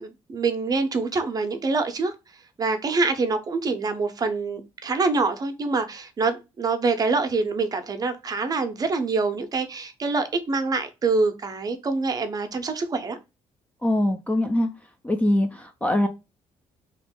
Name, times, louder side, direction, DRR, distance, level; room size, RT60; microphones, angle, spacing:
voice 1, 0.0-2.1 2.6-13.2, right 3 dB, 30° right, 0.6 m, -25 dB
voice 2, 13.8-14.7 15.0-16.1, left 1 dB, 10° left, 0.4 m, -22 dB
2.9 x 2.5 x 3.6 m
cardioid pair, 120°, 12 cm